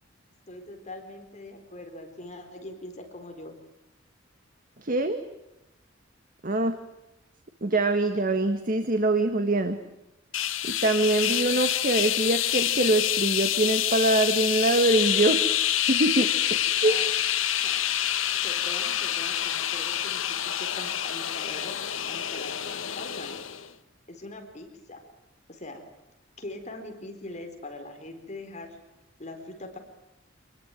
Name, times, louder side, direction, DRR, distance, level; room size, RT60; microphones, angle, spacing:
voice 1, 0.5-3.5 16.8-17.2 17.6-17.8 18.4-21.8 22.1-23.4 24.1-25.0 25.5-25.8 26.4-28.8 29.2-29.8, left 2 dB, 35° left, 5 dB, 4.1 m, -42 dB
voice 2, 4.8-5.2 6.4-6.8 7.6-9.8 10.6-15.4 15.9-16.3 16.8-17.0, right 2 dB, 45° right, 8 dB, 1.8 m, -24 dB
sound 1, 10.3-23.7, left 11 dB, 85° left, 1.4 m, -27 dB
27.0 x 21.0 x 9.3 m, 0.89 s
head